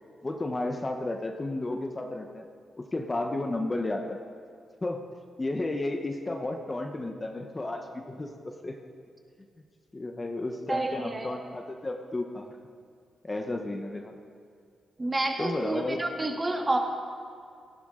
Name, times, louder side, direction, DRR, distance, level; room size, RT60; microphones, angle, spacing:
voice 1, 0.2-2.4 2.8-4.2 4.8-5.0 5.4-8.8 9.9-12.6 13.2-14.1 15.4-16.0, left 2 dB, 20° left, 4 dB, 0.9 m, -32 dB
voice 2, 10.7-11.3 15.0-16.8, right 2 dB, 20° right, 3 dB, 1.6 m, -29 dB
17.5 x 14.5 x 3.8 m, 2.3 s
cardioid pair, 110°, 0 cm